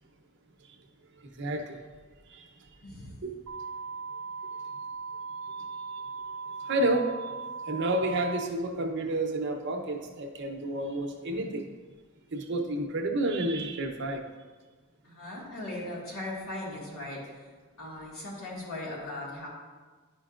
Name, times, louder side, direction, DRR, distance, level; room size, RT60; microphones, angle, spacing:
voice 1, 1.4-1.8 2.3-2.4 3.2-3.3 5.9-6.0 6.7-7.3 7.7-11.7 12.3-14.2, right 1 dB, 55° right, 3 dB, 0.8 m, -30 dB
voice 2, 2.8-3.2 15.0-19.5, left 1 dB, 70° left, -4 dB, 2.0 m, -39 dB
sound 1, 3.5-8.5, right 5 dB, 85° right, 0.6 m, -38 dB
11.0 x 5.2 x 2.5 m, 1.4 s
head